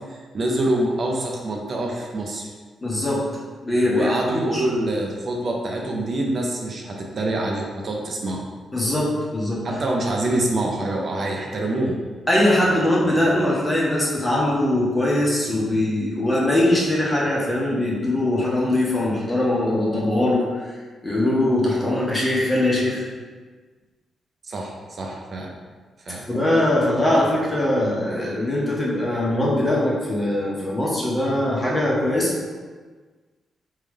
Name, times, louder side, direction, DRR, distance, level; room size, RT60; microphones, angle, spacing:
voice 1, 0.0-2.5 3.9-8.4 9.6-12.0 24.4-25.5 26.1-26.2, right 1 dB, 55° right, 0 dB, 0.6 m, -25 dB
voice 2, 2.8-3.3 3.6-4.6 8.7-9.6 12.3-20.6 21.0-23.0 26.3-32.3, left 1 dB, 20° left, -5 dB, 1.3 m, -21 dB
3.3 x 3.2 x 3.6 m, 1.4 s
cardioid pair, 65°, 0 cm